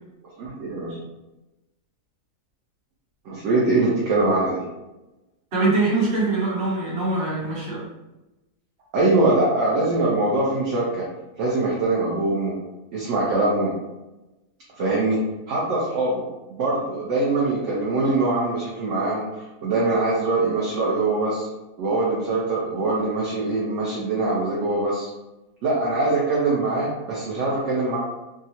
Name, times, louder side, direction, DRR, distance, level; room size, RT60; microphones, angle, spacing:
voice 1, 0.4-1.0 3.2-4.6 8.9-11.1 11.4-12.5 12.9-13.7 14.8-15.2 15.5-16.3 16.6-21.5 21.8-25.1 25.6-28.0, right 2 dB, 60° right, -6 dB, 0.9 m, -23 dB
voice 2, 5.5-7.9, right 2 dB, 45° right, -6 dB, 1.2 m, -23 dB
3.6 x 2.0 x 2.8 m, 1.0 s
omnidirectional pair, 1.7 m